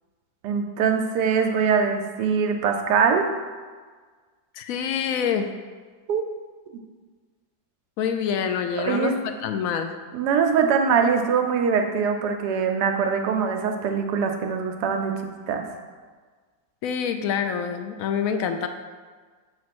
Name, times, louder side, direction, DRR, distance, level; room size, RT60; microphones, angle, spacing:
voice 1, 0.4-3.3 6.1-6.2 8.8-9.2 10.1-15.1 15.5-15.7, right 6 dB, 75° right, 4 dB, 1.2 m, -22 dB
voice 2, 4.5-5.5 8.0-9.9 16.8-18.7, left 7 dB, 70° left, 7 dB, 0.8 m, -26 dB
6.9 x 3.2 x 5.9 m, 1.5 s
omnidirectional pair, 1.8 m